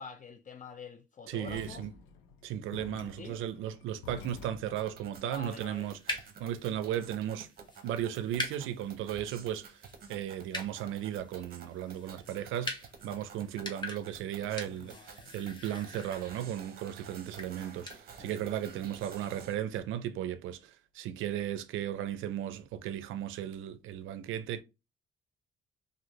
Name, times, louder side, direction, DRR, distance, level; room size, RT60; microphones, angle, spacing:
voice 1, 0.0-1.8 3.2-3.4 5.2-5.9 14.7-15.4 18.2-18.5, left 5 dB, 40° left, 0.5 m, -47 dB
voice 2, 1.3-1.9 2.4-6.0 6.4-7.5 7.8-9.8 10.1-24.6, right 11 dB, 85° right, 0.4 m, -36 dB
sound 1, 1.4-4.9, left 6 dB, 90° left, 0.6 m, -49 dB
sound 2, 4.6-19.6, right 6 dB, 50° right, 0.7 m, -51 dB
sound 3, 5.4-18.0, left 1 dB, 20° left, 0.9 m, -44 dB
2.6 x 2.6 x 2.9 m
cardioid pair, 90°, 20 cm